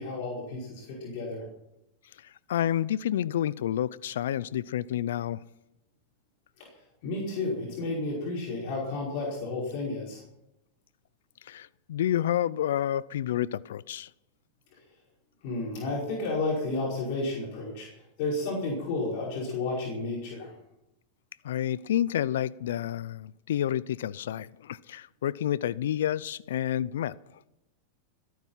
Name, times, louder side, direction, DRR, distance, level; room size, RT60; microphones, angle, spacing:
voice 1, 0.0-1.5 6.6-6.7 7.0-10.2 15.4-20.5, left 2 dB, 60° left, 5.2 m, -32 dB
voice 2, 2.2-5.4 11.4-14.1 21.4-27.2, left 11 dB, 80° left, 0.4 m, -29 dB
21.5 x 9.4 x 5.7 m
hypercardioid pair, 110°, 0 cm